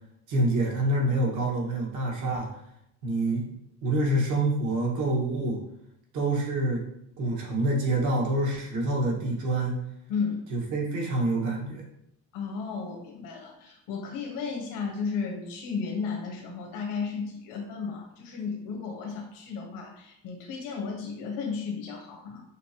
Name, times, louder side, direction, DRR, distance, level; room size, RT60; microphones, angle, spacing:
voice 1, 0.3-2.5 3.0-3.5 3.8-5.6 6.1-6.8 7.2-9.8 10.5-11.8, right 2 dB, 65° right, -2 dB, 1.6 m, -26 dB
voice 2, 10.1-10.4 12.3-22.4, left 5 dB, 85° left, 1 dB, 1.0 m, -34 dB
6.4 x 2.6 x 2.9 m, 0.77 s
cardioid pair, 150°, 33 cm